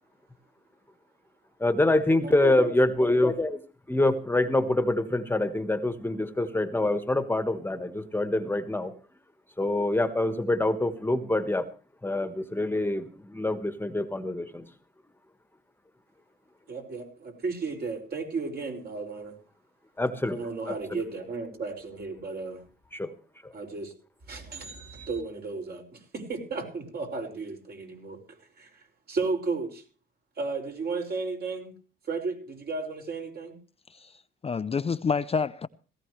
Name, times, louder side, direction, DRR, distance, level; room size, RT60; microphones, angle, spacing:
voice 1, 1.6-3.6 3.9-8.9 9.6-11.7 12.0-14.7 20.0-21.0 22.9-23.1 23.4-23.5, left 2 dB, 10° left, 1.4 m, -26 dB
voice 2, 2.2-2.8 16.7-19.4 20.4-22.6 23.5-23.9 24.2-29.8 30.4-31.7 32.1-33.6, right 4 dB, 55° right, 5.7 m, -34 dB
voice 3, 33.9-35.7, left 5 dB, 30° left, 0.6 m, -29 dB
17.5 x 16.5 x 3.2 m
cardioid pair, 90°, 20 cm